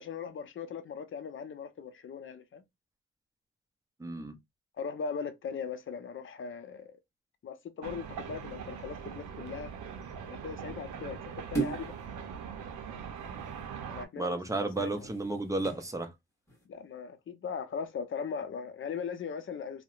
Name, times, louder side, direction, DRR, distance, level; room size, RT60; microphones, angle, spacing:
voice 1, 0.0-2.6 4.8-7.0 7.4-9.7 10.4-11.9 13.9-14.4 14.8-15.1 16.7-19.8, left 6 dB, 40° left, 0.6 m, -39 dB
voice 2, 4.0-4.4 14.2-16.1, right 2 dB, 10° right, 0.6 m, -33 dB
sound 1, 7.8-14.1, right 7 dB, 80° right, 0.6 m, -42 dB
sound 2, 11.5-12.0 14.6-15.9 16.5-16.6, right 4 dB, 10° left, 1.3 m, -36 dB
2.7 x 2.1 x 2.3 m
cardioid pair, 90°, 30 cm